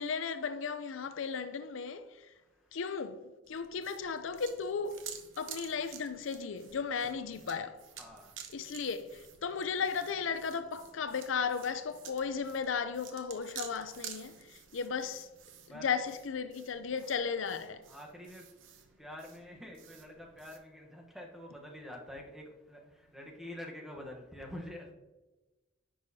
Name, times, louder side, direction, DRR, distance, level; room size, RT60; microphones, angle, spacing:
voice 1, 0.0-2.0 2.7-5.0 5.4-7.8 8.5-15.3 15.7-17.8, left 5 dB, 80° left, 0.5 m, -35 dB
voice 2, 2.3-2.8 8.0-8.7 14.6-14.8 15.6-16.0 17.9-24.9, left 1 dB, ahead, 1.0 m, -47 dB
sound 1, 3.4-20.6, right 8 dB, 80° right, 0.9 m, -51 dB
10.0 x 6.3 x 2.7 m
head